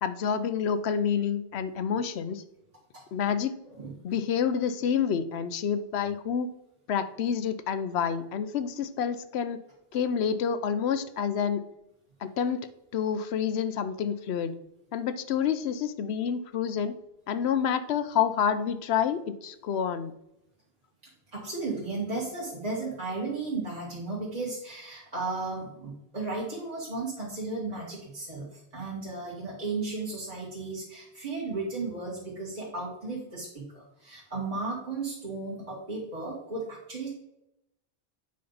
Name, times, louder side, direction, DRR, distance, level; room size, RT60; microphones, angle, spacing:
voice 1, 0.0-2.4 3.1-3.6 4.0-6.5 6.9-9.6 9.9-11.6 12.2-12.7 12.9-14.5 14.9-16.9 17.3-20.1, left 7 dB, 85° left, 12 dB, 0.9 m, -28 dB
voice 2, 21.3-37.1, right 3 dB, 40° right, -7 dB, 2.0 m, -35 dB
8.5 x 5.6 x 4.0 m, 0.85 s
omnidirectional pair, 1.1 m